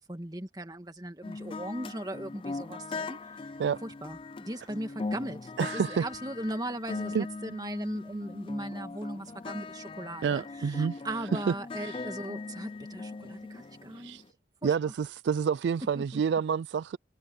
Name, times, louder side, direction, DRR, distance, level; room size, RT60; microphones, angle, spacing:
voice 1, 0.0-3.5 3.8-14.2 14.6-14.9 16.0-16.2, right 1 dB, 20° right, 2.0 m, -38 dB
sound 1, 1.2-14.3, left 3 dB, 30° left, 0.4 m, -40 dB
voice 2, 5.6-6.1 7.1-7.3 10.2-11.0 11.5-11.6 14.0-14.2 14.6-17.0, right 6 dB, 75° right, 0.3 m, -28 dB
head